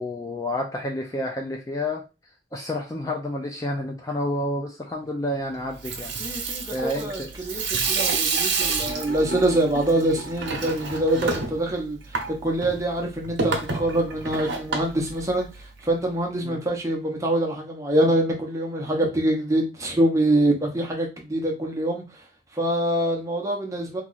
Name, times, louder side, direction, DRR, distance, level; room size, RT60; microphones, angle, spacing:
voice 1, 0.0-2.0 2.5-7.3 11.2-11.3 16.4-16.6, left 1 dB, 20° left, 1 dB, 0.4 m, -30 dB
Water tap faucet / Sink (filling or washing), 5.6-15.8, right 4 dB, 70° right, 0.8 m, -29 dB
voice 2, 6.2-22.2 22.5-24.0, right 1 dB, 15° right, 0 dB, 0.8 m, -25 dB
2.9 x 2.3 x 3.9 m, 0.28 s
head